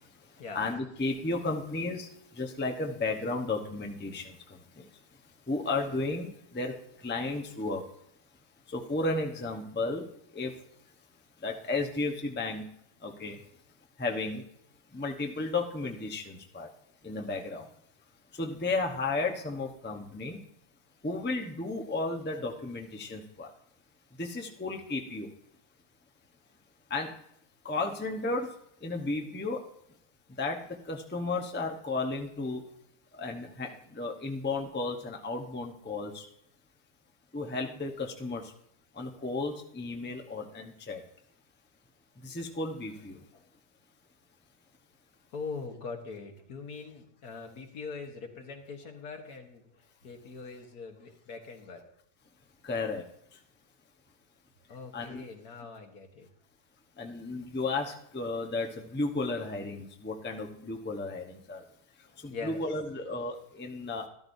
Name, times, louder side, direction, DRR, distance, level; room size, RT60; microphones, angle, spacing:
voice 1, 0.5-2.1 2.4-4.3 5.5-6.3 6.5-6.7 7.0-7.8 8.7-10.0 10.3-10.5 11.4-12.6 13.0-13.3 14.0-14.4 14.9-16.7 17.0-17.6 18.4-20.4 21.0-23.5 24.2-25.3 26.9-27.1 27.6-28.5 28.8-29.6 30.4-30.6 30.9-32.6 33.2-36.2 37.3-38.4 39.0-41.0 42.2-43.1 52.6-53.0 54.9-55.2 57.0-61.6 62.2-64.0, left 3 dB, 10° left, 2 dB, 0.7 m, -33 dB
voice 2, 45.3-51.8 54.7-56.3 62.3-62.6, left 4 dB, 75° left, 4 dB, 1.9 m, -42 dB
13.0 x 13.0 x 2.7 m, 0.73 s
omnidirectional pair, 1.7 m